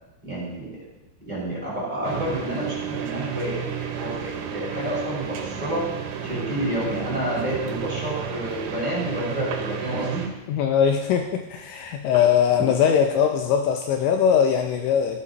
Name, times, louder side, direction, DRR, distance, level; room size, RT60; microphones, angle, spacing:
voice 1, 0.2-0.8 1.3-5.8 6.2-10.2, right 1 dB, 10° right, -7 dB, 4.1 m, -29 dB
sound 1, 2.0-10.3, right 8 dB, 85° right, 3.9 m, -32 dB
voice 2, 10.5-15.2, left 8 dB, 90° left, 4 dB, 2.6 m, -21 dB
15.0 x 12.0 x 2.9 m, 1.0 s
omnidirectional pair, 6.0 m